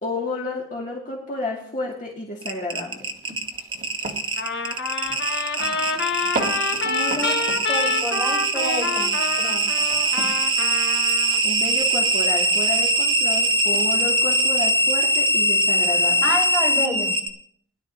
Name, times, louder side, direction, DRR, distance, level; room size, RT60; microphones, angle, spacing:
voice 1, 0.0-3.0 11.4-16.3, left 2 dB, 40° left, -3 dB, 2.1 m, -30 dB
sound 1, 2.4-17.3, right 1 dB, 25° right, 1.2 m, -22 dB
sound 2, 2.9-14.3, right 2 dB, 40° right, 2.5 m, -38 dB
Trumpet, 4.4-11.4, left 4 dB, 55° left, 1.5 m, -27 dB
voice 2, 5.6-6.1 6.8-7.4 7.7-9.7 16.2-17.1, equal, 5° left, -4 dB, 4.4 m, -29 dB
20.5 x 11.0 x 2.7 m, 0.65 s
head